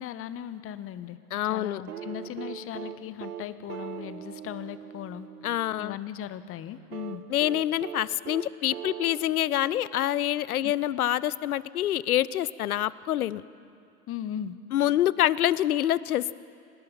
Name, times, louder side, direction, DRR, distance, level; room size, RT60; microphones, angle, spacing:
voice 1, 0.0-1.2 1.5-5.3 5.8-7.2 10.6-10.7 14.1-14.6, left 10 dB, 30° left, 14 dB, 1.0 m, -38 dB
voice 2, 1.3-1.8 5.4-6.0 7.3-13.4 14.7-16.3, left 12 dB, 75° left, 20 dB, 0.7 m, -26 dB
sound 1, 1.9-6.0 6.9-10.5 11.9-12.0, right 9 dB, 75° right, 1.1 m, -41 dB
25.0 x 19.5 x 5.7 m, 2.5 s
figure-of-eight pair, 85°, 44 cm